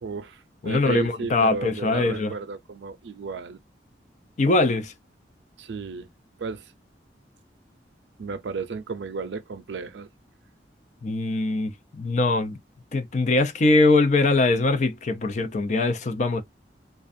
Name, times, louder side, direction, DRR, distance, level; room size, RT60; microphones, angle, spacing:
voice 1, 0.0-3.6 5.6-6.1 6.4-6.7 8.2-10.1, right 4 dB, 90° right, 0.5 m, -33 dB
voice 2, 0.6-2.3 4.4-4.9 11.0-12.6 12.9-16.4, left 2 dB, 45° left, 0.4 m, -22 dB
2.5 x 2.2 x 2.5 m
head